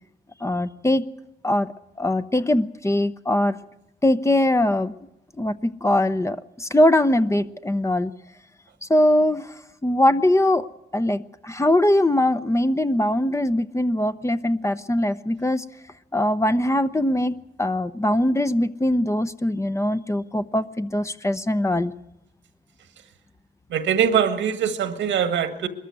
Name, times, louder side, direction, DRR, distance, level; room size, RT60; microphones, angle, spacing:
voice 1, 0.4-1.0 1.4-1.7 2.0-3.6 4.0-4.9 5.4-8.1 8.8-9.5 9.8-10.7 10.9-15.6 16.1-21.9, left 1 dB, 15° left, 11 dB, 0.8 m, -21 dB
voice 2, 23.7-25.7, right 8 dB, 85° right, 9 dB, 1.7 m, -22 dB
21.5 x 14.0 x 9.4 m, 0.89 s
cardioid pair, 75°, 19 cm